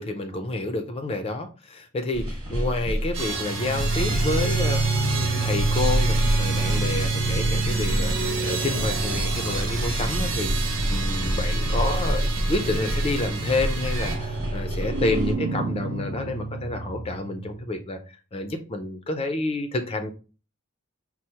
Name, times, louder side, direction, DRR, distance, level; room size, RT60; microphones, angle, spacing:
voice 1, 0.0-18.0 18.3-20.1, left 2 dB, 30° left, 7 dB, 0.4 m, -29 dB
sound 1, 2.1-15.3, equal, 25° right, 1.0 m, -28 dB
sound 2, 3.1-17.7, right 3 dB, 55° right, 0.6 m, -29 dB
sound 3, 3.1-14.2, right 4 dB, 85° right, 1.1 m, -31 dB
4.3 x 2.0 x 2.7 m, 0.34 s
head